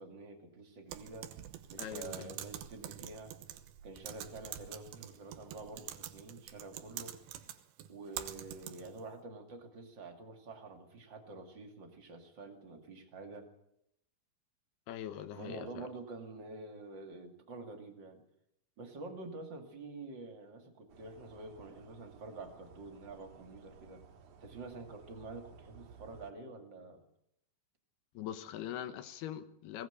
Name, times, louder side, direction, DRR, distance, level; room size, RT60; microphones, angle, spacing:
voice 1, 0.0-1.3 1.7-3.3 3.8-7.2 7.9-13.5 15.2-18.2 18.8-24.0 24.4-27.0, right 3 dB, 35° right, 5 dB, 2.4 m, -48 dB
Typing, 0.9-9.0, right 12 dB, 85° right, 3.4 m, -46 dB
voice 2, 1.8-2.3 14.9-15.9 28.1-29.9, left 11 dB, 75° left, 11 dB, 3.1 m, -42 dB
sound 1, 20.9-26.3, right 6 dB, 55° right, 2.7 m, -57 dB
20.0 x 17.0 x 8.2 m, 0.77 s
omnidirectional pair, 4.8 m